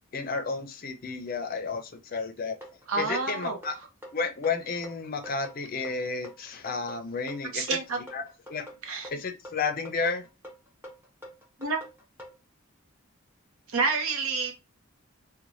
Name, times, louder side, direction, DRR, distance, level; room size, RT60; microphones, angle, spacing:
voice 1, 0.1-2.6 3.0-3.7 4.1-7.8 8.1-8.6 9.1-10.2, left 4 dB, 45° left, 0.5 m, -32 dB
sound 1, 2.6-12.4, equal, 10° right, 0.7 m, -46 dB
voice 2, 2.9-3.6 7.5-8.0 8.8-9.1 11.6-11.8 13.7-14.5, right 4 dB, 85° right, 0.7 m, -28 dB
2.6 x 2.1 x 3.0 m
head